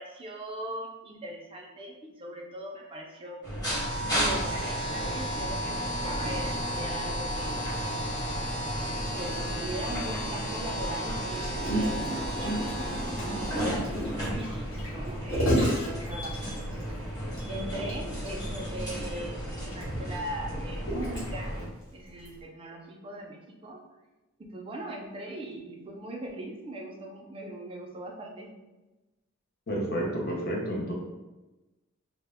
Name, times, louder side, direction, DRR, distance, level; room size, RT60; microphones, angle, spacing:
voice 1, 0.0-3.4 4.0-7.7 9.2-13.9 14.2-16.9 17.5-21.6 21.9-23.8 24.4-28.5, right 1 dB, 25° right, 0 dB, 0.3 m, -40 dB
sound 1, 3.4-21.7, equal, 20° left, 0.9 m, -33 dB
Gurgling, 11.3-16.8 17.3-17.4 17.7-17.9 18.3-18.4 19.1-21.6 22.3-22.4, equal, 70° left, 1.0 m, -31 dB
voice 2, 29.7-30.9, right 1 dB, 50° left, -2 dB, 0.6 m, -30 dB
2.1 x 2.0 x 3.4 m, 1.1 s
head